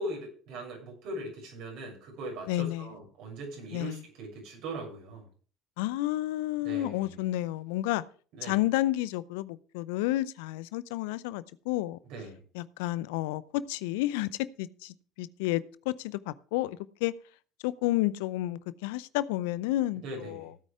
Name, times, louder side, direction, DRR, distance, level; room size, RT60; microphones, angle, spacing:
voice 1, 0.0-5.3 6.6-7.2 8.3-8.6 12.1-12.4 20.0-20.5, right 1 dB, 65° right, 7.1 m, -40 dB
voice 2, 2.5-2.9 3.7-4.0 5.8-8.0 8.4-12.0 12.5-14.3 14.6-17.1 17.6-20.5, left 16 dB, 70° left, 0.6 m, -31 dB
16.0 x 9.1 x 3.6 m
hypercardioid pair, 60°, 0 cm